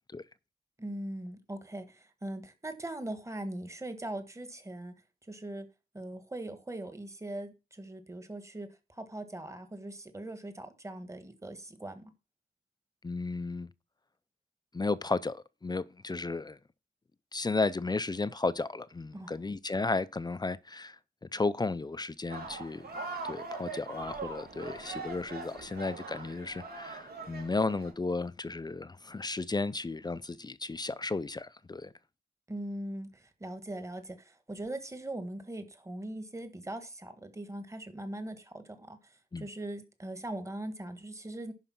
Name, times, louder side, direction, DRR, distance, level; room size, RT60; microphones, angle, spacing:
voice 1, 0.8-4.9 5.3-5.7 5.9-12.1 19.1-19.3 32.5-41.5, right 1 dB, 20° right, 1.5 m, -41 dB
voice 2, 13.0-13.7 14.7-16.6 17.3-22.9 23.2-31.9 39.3-39.5, left 3 dB, 25° left, 0.5 m, -34 dB
sound 1, 22.3-27.9, right 3 dB, 80° right, 3.5 m, -42 dB
11.0 x 4.9 x 5.9 m
wide cardioid pair, 130°, 16 cm